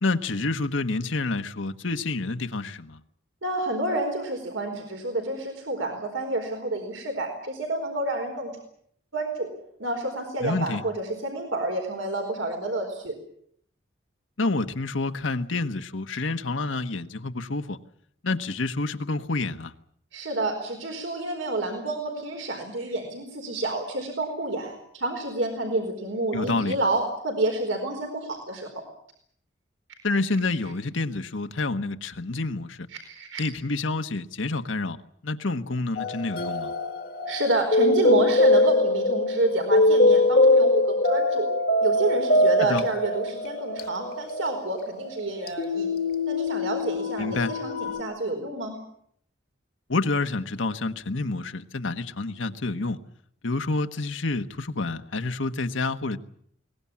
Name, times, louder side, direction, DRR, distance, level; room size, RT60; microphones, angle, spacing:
voice 1, 0.0-3.0 10.4-10.8 14.4-17.8 18.2-19.7 26.3-26.8 30.0-32.9 33.4-35.0 35.2-36.7 42.6-42.8 47.2-47.5 49.9-53.0 53.4-56.2, left 3 dB, 85° left, 8 dB, 1.3 m, -28 dB
voice 2, 3.4-8.5 9.1-9.5 9.8-13.1 20.1-28.7 32.9-33.4 37.3-41.5 41.8-45.9 46.3-48.8, right 2 dB, 90° right, 3 dB, 4.5 m, -29 dB
sound 1, 36.0-48.0, left 2 dB, 50° left, 1.4 m, -23 dB
22.5 x 19.5 x 8.6 m, 0.65 s
head